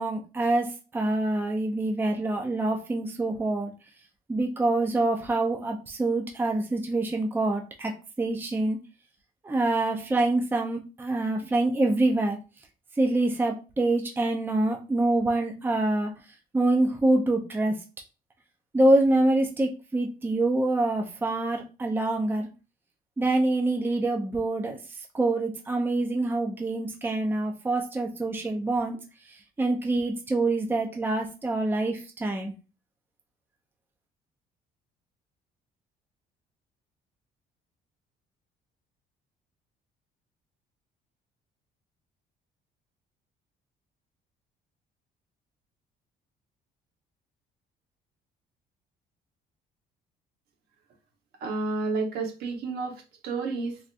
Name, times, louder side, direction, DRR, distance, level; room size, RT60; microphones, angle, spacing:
voice 1, 0.0-3.7 4.3-7.9 8.2-8.8 9.4-12.4 13.0-16.1 16.5-17.7 18.7-22.5 23.2-24.8 25.1-29.0 29.3-32.5, right 2 dB, 10° right, 3 dB, 0.5 m, -25 dB
voice 2, 51.4-53.8, right 3 dB, 75° right, 2 dB, 1.1 m, -31 dB
3.4 x 2.5 x 2.5 m, 0.31 s
cardioid pair, 110°, 17 cm